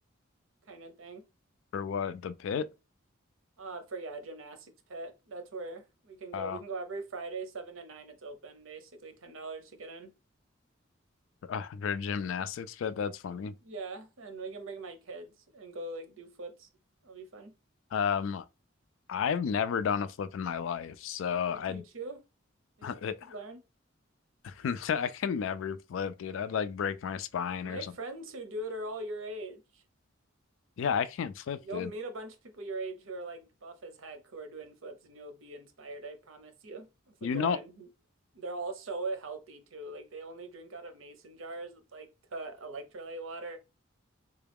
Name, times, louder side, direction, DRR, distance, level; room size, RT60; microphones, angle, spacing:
voice 1, 0.7-1.2 3.6-10.1 13.6-16.7 17.0-17.5 21.5-22.2 22.8-22.9 23.2-23.6 27.6-29.8 31.6-37.9 38.3-43.6, right 2 dB, 85° right, 0.7 m, -41 dB
voice 2, 1.7-2.7 6.3-6.6 11.5-13.5 17.9-18.4 19.1-21.8 22.8-23.3 24.4-27.9 30.8-31.9 37.2-37.6, left 7 dB, 75° left, 0.3 m, -32 dB
3.7 x 2.3 x 3.4 m
head